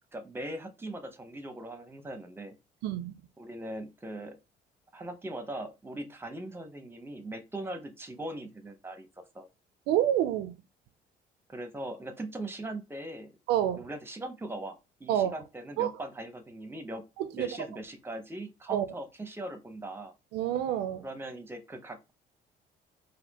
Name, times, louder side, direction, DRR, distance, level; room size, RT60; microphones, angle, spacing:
voice 1, 0.1-2.6 3.4-4.4 4.9-9.1 9.3-9.5 11.5-13.3 13.8-17.1 17.3-20.1 21.0-22.1, right 1 dB, 15° right, 0.8 m, -40 dB
voice 2, 2.8-3.2 9.9-10.5 13.5-13.9 15.1-15.3 15.8-15.9 17.2-17.5 18.7-18.9 20.3-21.1, right 11 dB, 85° right, 0.4 m, -28 dB
4.2 x 2.5 x 2.8 m
cardioid pair, 110°, 17 cm